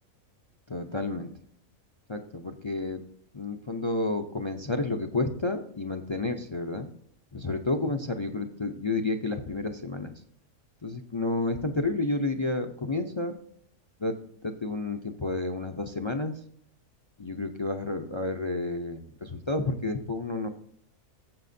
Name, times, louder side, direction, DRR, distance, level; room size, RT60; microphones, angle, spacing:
voice 1, 0.7-1.3 2.1-3.0 3.3-6.9 7.3-10.1 10.8-13.4 14.0-14.2 14.4-16.3 17.2-20.5, left 2 dB, 40° left, 5 dB, 0.4 m, -30 dB
13.5 x 7.6 x 2.7 m, 0.65 s
omnidirectional pair, 1.5 m